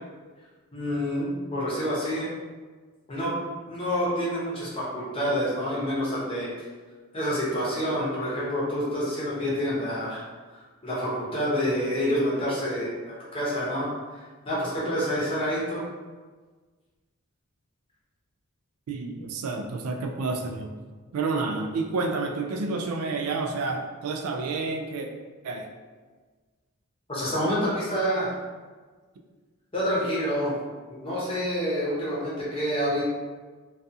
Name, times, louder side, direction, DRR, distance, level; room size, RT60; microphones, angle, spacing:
voice 1, 0.7-2.3 3.1-3.3 3.7-6.5 7.1-10.2 10.8-12.9 13.3-13.9 14.1-15.8 27.1-28.3 29.7-30.6 30.9-33.0, equal, 25° left, -7 dB, 0.7 m, -27 dB
voice 2, 18.9-20.7 21.1-25.1 25.4-25.7, right 3 dB, 85° right, 4 dB, 0.3 m, -29 dB
2.4 x 2.3 x 2.7 m, 1.4 s
head